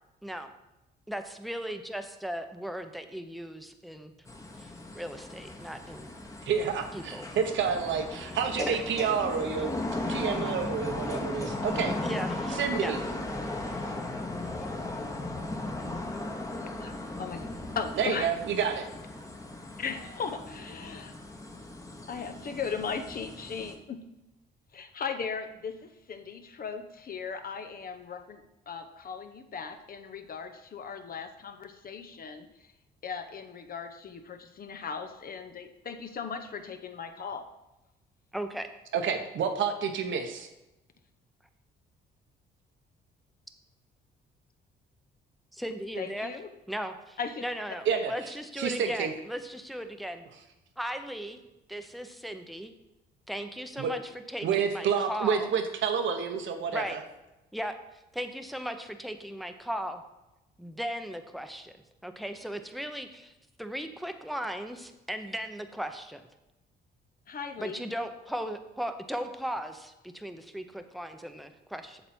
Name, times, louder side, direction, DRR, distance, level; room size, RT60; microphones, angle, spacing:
voice 1, 1.1-4.1 4.6-6.1 6.9-7.3 8.7-8.8 12.0-13.0 38.3-38.7 45.5-46.4 46.7-50.2 50.8-51.4 51.7-52.7 53.3-54.0 54.3-55.5 56.7-57.0 57.5-60.0 60.6-61.7 62.0-63.3 63.6-66.3 67.6-72.0, equal, ahead, 7 dB, 0.8 m, -37 dB
sound 1, 4.3-23.7, left 2 dB, 15° left, 1.2 m, -37 dB
voice 2, 6.5-9.8 10.1-12.0 12.6-13.0 18.0-18.9 38.9-40.5 47.8-48.1 48.6-49.1 53.8-53.9 54.4-57.0, right 6 dB, 70° right, 6 dB, 1.1 m, -29 dB
voice 3, 17.7-18.3 19.8-21.1 22.1-24.0 24.7-32.5 33.0-37.4 46.0-46.5 47.2-47.4 47.9-48.0 67.3-67.8, left 6 dB, 50° left, 6 dB, 1.0 m, -37 dB
8.1 x 6.8 x 4.4 m, 0.95 s
cardioid pair, 90°, 20 cm